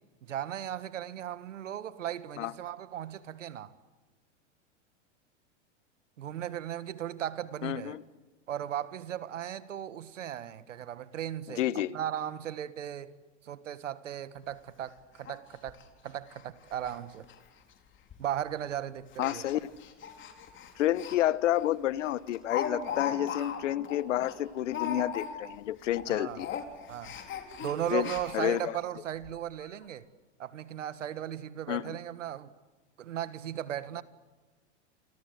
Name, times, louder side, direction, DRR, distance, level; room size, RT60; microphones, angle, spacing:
voice 1, 0.2-3.7 6.2-8.0 8.5-13.1 13.4-15.8 16.0-17.2 18.2-19.4 26.1-26.4 26.9-27.1 27.6-30.0 30.4-32.5 33.0-34.0, right 10 dB, 85° right, 1.7 m, -37 dB
voice 2, 7.6-8.0 11.6-12.0 19.2-19.7 20.8-26.6 27.9-28.8 31.7-32.0, left 13 dB, 75° left, 1.2 m, -30 dB
Speech, 14.4-14.5 14.8-14.9 15.3-15.4 15.7-15.8 16.3-16.4 16.7-17.0 17.2-17.3 18.1-18.3 19.1-21.2 21.5-21.7 22.0-25.6 25.8-26.1 26.4-28.6 29.2-29.3 29.6-29.7, left 7 dB, 30° left, 4.4 m, -38 dB
29.0 x 25.5 x 7.9 m
hypercardioid pair, 115°, 36 cm